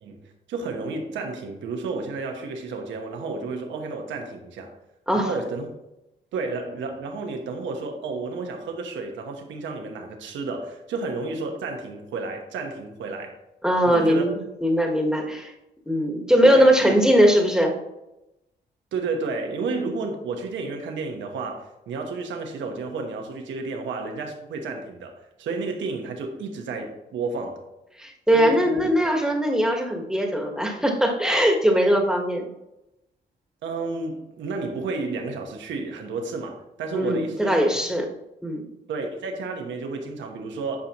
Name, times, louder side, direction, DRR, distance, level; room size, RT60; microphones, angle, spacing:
voice 1, 0.0-4.7 5.1-5.7 6.3-13.3 13.8-14.3 16.4-16.7 18.9-25.1 25.4-27.7 28.3-28.8 33.6-37.8 38.9-40.8, right 3 dB, 90° right, 1.2 m, -31 dB
voice 2, 13.6-15.5 15.9-17.7 28.0-32.5 36.9-38.1 38.4-38.6, equal, 5° right, 1.5 m, -20 dB
9.9 x 5.1 x 3.0 m
cardioid pair, 75°, 19 cm